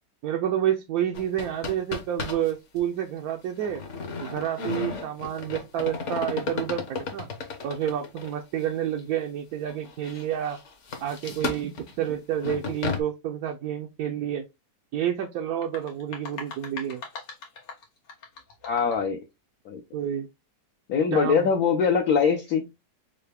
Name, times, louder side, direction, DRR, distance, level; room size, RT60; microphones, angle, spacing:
voice 1, 0.2-3.8 4.2-7.3 7.6-10.6 11.0-14.5 14.9-17.0 19.9-20.3 21.1-21.5, right 10 dB, 70° right, 1.0 m, -29 dB
sound 1, 1.1-2.5 2.8-2.9 3.6-8.4 9.0-9.1 9.7-13.0, left 4 dB, 50° left, 1.2 m, -34 dB
sound 2, 15.5-19.1, left 4 dB, 85° left, 1.8 m, -42 dB
voice 2, 18.6-19.2 19.6-19.8 20.9-22.7, left 6 dB, 65° left, 1.1 m, -22 dB
5.5 x 2.2 x 3.4 m
omnidirectional pair, 1.9 m